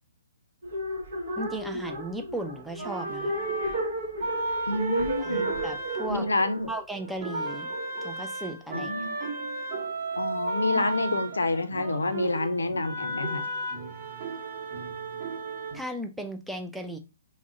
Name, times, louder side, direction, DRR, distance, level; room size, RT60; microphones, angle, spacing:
sound 1, 0.6-7.8, right 2 dB, 60° right, 0.8 m, -33 dB
voice 1, 1.4-3.3 5.2-6.3 6.7-7.7 8.0-8.9 15.7-17.0, right 1 dB, ahead, 0.4 m, -36 dB
sound 2, 2.8-6.9 7.2-15.8, right 2 dB, 35° right, 1.0 m, -34 dB
voice 2, 4.7-5.5 6.1-6.7 8.7-9.2 10.2-13.5, left 2 dB, 75° left, 0.4 m, -28 dB
3.5 x 2.1 x 3.7 m
figure-of-eight pair, 125°, 0 cm